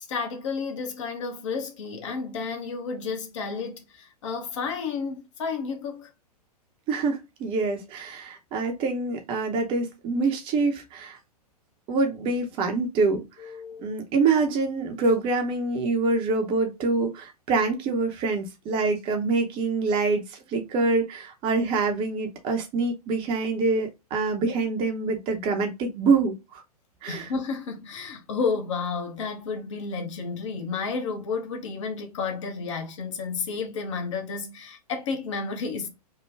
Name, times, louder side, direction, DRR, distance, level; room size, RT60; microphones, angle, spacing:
voice 1, 0.0-6.1 13.4-13.9 27.1-35.9, left 5 dB, 50° left, 0.8 m, -31 dB
voice 2, 6.9-11.2 11.9-13.2 13.8-26.6 27.0-27.3, right 3 dB, 25° right, 0.7 m, -25 dB
3.3 x 2.2 x 3.3 m
figure-of-eight pair, 105°, 20 cm